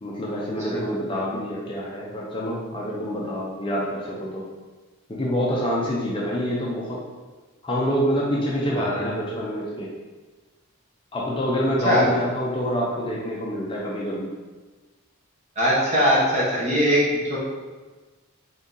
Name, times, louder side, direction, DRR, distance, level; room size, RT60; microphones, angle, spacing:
voice 1, 0.0-4.4 5.1-7.0 7.6-9.9 11.1-14.3, equal, 25° left, -5 dB, 0.5 m, -26 dB
voice 2, 8.7-9.1 11.8-12.0 15.6-17.4, equal, 30° right, -6 dB, 1.0 m, -21 dB
3.5 x 2.8 x 3.7 m, 1.3 s
head